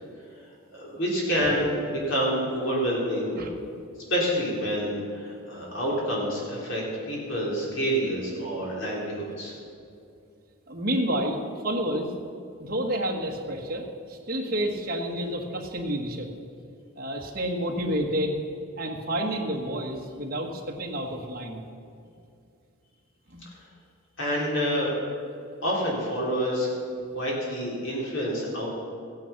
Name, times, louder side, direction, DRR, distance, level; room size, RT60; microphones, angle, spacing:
voice 1, 0.7-3.4 4.1-9.6 24.2-24.9 25.6-26.7 27.1-28.7, equal, 60° left, -4 dB, 3.9 m, -27 dB
voice 2, 10.7-12.1 12.6-16.3 17.0-18.4 18.8-21.6 23.3-23.4, equal, 40° right, 1 dB, 1.4 m, -29 dB
15.0 x 9.4 x 5.9 m, 2.4 s
head